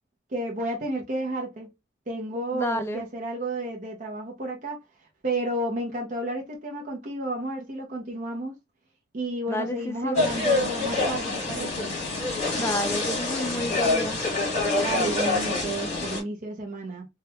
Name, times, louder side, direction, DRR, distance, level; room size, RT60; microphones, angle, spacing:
voice 1, 0.3-1.7 2.1-8.6 9.1-11.9 14.8-17.1, right 1 dB, 40° right, 0.7 m, -31 dB
voice 2, 2.5-3.0 9.5-10.2 12.5-14.2, left 1 dB, 15° left, 0.4 m, -30 dB
sound 1, 10.1-16.2, left 3 dB, 40° left, 1.5 m, -26 dB
3.3 x 2.3 x 2.8 m
head